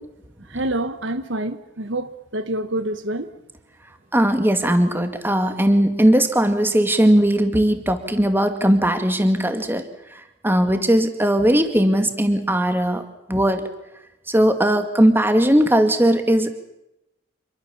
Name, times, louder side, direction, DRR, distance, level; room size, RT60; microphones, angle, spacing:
voice 1, 0.5-3.3, right 1 dB, 60° right, 1.2 m, -27 dB
voice 2, 4.1-9.8 10.4-13.0 13.3-13.6 14.3-16.5, right 1 dB, 10° right, 2.1 m, -18 dB
28.0 x 22.5 x 7.2 m
head